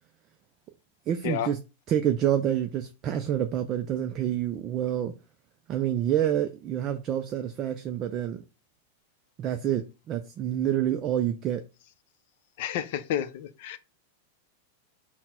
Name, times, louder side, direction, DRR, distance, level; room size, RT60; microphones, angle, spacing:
voice 1, 1.1-1.6 1.9-5.1 5.7-8.4 9.4-11.6, right 10 dB, 30° right, 0.3 m, -27 dB
voice 2, 12.6-13.8, left 10 dB, 55° left, 0.5 m, -30 dB
4.0 x 2.1 x 4.3 m
supercardioid pair, 155°, 0 cm